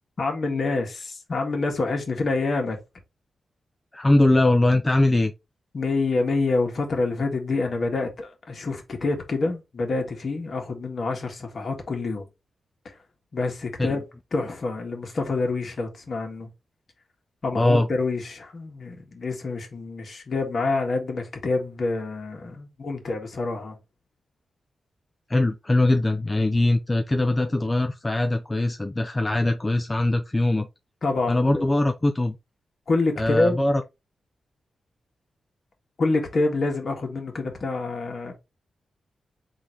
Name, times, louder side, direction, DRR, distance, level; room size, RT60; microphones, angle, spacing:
voice 1, 0.2-2.8 5.7-12.2 12.8-12.9 13.3-14.0 14.3-16.5 17.4-23.8 31.0-31.6 32.9-33.6 36.0-38.3, left 3 dB, 50° left, 1.4 m, -27 dB
voice 2, 3.9-5.3 13.8-13.9 17.5-17.9 25.3-30.7 31.3-32.4 33.2-33.8, left 2 dB, 20° left, 0.4 m, -21 dB
3.8 x 2.6 x 4.5 m
wide cardioid pair, 115°, 0 cm